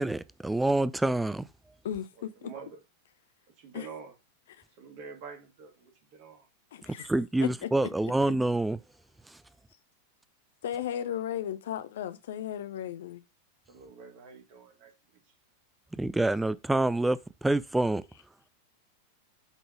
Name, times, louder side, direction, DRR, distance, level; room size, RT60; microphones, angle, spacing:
voice 1, 0.0-1.5 7.0-8.8 9.3-9.4 16.0-18.0, right 2 dB, 5° right, 0.3 m, -27 dB
voice 2, 1.8-2.5 3.7-3.9 6.7-7.1 7.4-7.7 10.6-13.2, left 10 dB, 60° left, 0.7 m, -35 dB
voice 3, 2.4-2.8 3.6-4.1 4.8-6.5 13.7-15.2, right 5 dB, 45° right, 2.1 m, -47 dB
8.2 x 3.9 x 4.9 m
figure-of-eight pair, 90°, 0 cm